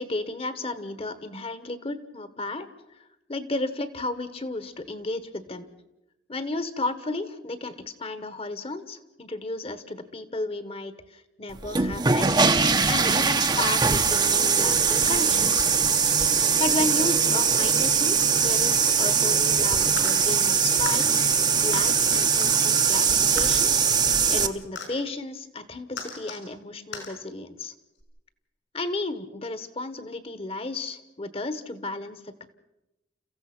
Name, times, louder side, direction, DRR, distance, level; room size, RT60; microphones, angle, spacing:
voice 1, 0.0-2.7 2.9-3.0 3.3-5.7 6.3-15.7 16.6-23.7 24.3-27.7 28.7-32.4, left 2 dB, 30° left, 12 dB, 1.3 m, -33 dB
sound 1, 11.6-24.5, right 6 dB, 25° right, 0.9 m, -21 dB
sound 2, 18.0-18.6 19.9-20.2 20.9-21.0 21.7-21.8 22.4-22.6 23.4-23.5 24.8-24.9 25.9-26.4 26.9-27.1 28.0-28.1, left 5 dB, 75° left, 5.5 m, -38 dB
29.5 x 15.5 x 6.1 m, 0.94 s
head